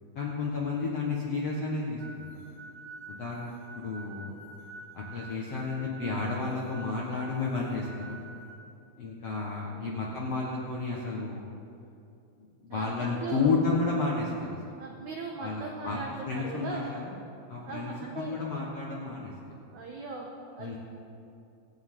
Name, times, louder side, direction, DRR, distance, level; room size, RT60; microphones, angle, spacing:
voice 1, 0.1-2.3 3.1-4.3 4.9-8.2 9.0-11.5 12.6-14.6 15.4-16.0 16.3-17.1 17.5-19.3 20.6-20.8, left 3 dB, 65° left, -4 dB, 1.5 m, -32 dB
sound 1, 2.0-8.5, right 2 dB, 30° right, 4.4 m, -48 dB
voice 2, 9.6-10.0 12.7-13.6 14.8-16.9 17.6-18.4 19.7-20.8, right 4 dB, 85° right, 0 dB, 1.7 m, -39 dB
26.0 x 8.9 x 3.8 m, 2.6 s
omnidirectional pair, 4.9 m